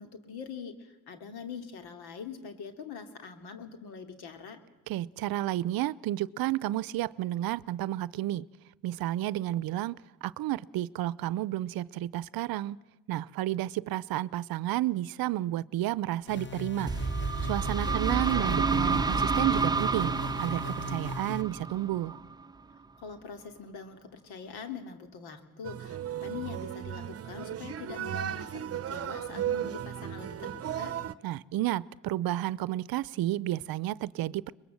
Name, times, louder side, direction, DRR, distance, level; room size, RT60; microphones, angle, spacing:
voice 1, 0.0-4.6 17.7-18.6 23.0-31.0, left 6 dB, 75° left, 7 dB, 2.8 m, -43 dB
voice 2, 4.9-8.5 8.8-12.8 13.1-16.9 17.5-22.2 31.2-34.5, right 14 dB, 65° right, 20 dB, 0.7 m, -31 dB
sound 1, 16.3-21.4, equal, 30° left, 1.9 m, -38 dB
sound 2, 16.9-22.5, right 4 dB, 10° right, 0.8 m, -29 dB
sound 3, 25.6-31.1, right 10 dB, 40° right, 0.9 m, -35 dB
23.5 x 21.5 x 7.7 m, 1.0 s
supercardioid pair, 80°, 38 cm